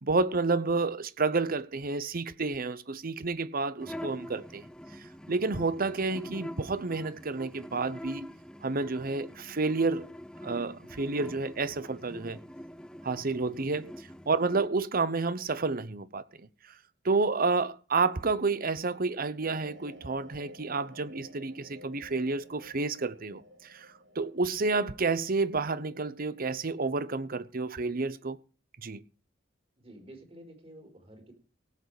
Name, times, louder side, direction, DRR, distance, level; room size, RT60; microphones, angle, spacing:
voice 1, 0.0-4.7 4.9-8.3 8.6-10.1 10.4-12.4 13.0-13.9 14.3-16.2 17.0-23.9 24.1-28.4 28.8-29.0, right 3 dB, 50° right, 0.9 m, -30 dB
sound 1, 3.8-14.7, equal, 5° left, 0.6 m, -45 dB
sound 2, 19.4-27.0, equal, 80° right, 5.5 m, -54 dB
voice 2, 29.8-31.3, right 1 dB, 30° right, 4.4 m, -50 dB
17.5 x 8.2 x 5.0 m
head